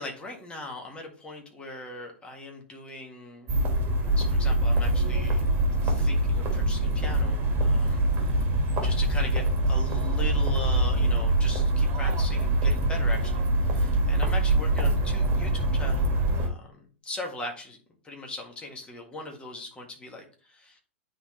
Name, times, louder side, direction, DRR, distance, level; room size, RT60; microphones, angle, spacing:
voice 1, 0.0-3.6 4.0-5.4 5.8-8.5 8.8-17.8 18.0-20.8, left 2 dB, 15° left, 1 dB, 1.7 m, -40 dB
sound 1, 3.5-16.5, right 1 dB, 30° right, 1.7 m, -24 dB
9.1 x 3.9 x 3.1 m, 0.40 s
figure-of-eight pair, 100°, 7 cm